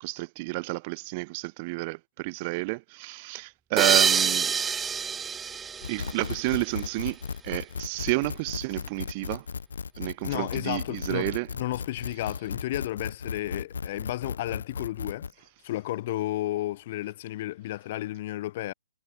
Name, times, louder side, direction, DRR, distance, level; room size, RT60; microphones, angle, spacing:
voice 1, 0.0-4.5 5.9-7.2 7.4-9.4 10.0-11.5, right 26 dB, 30° right, 0.9 m, -30 dB
sound 1, 3.8-6.8, right 6 dB, 10° right, 0.4 m, -26 dB
sound 2, 5.8-15.3, left 6 dB, 85° left, 4.5 m, -36 dB
voice 2, 10.3-15.3 15.6-18.7, left 15 dB, 40° left, 2.9 m, -32 dB
hypercardioid pair, 160°, 0 cm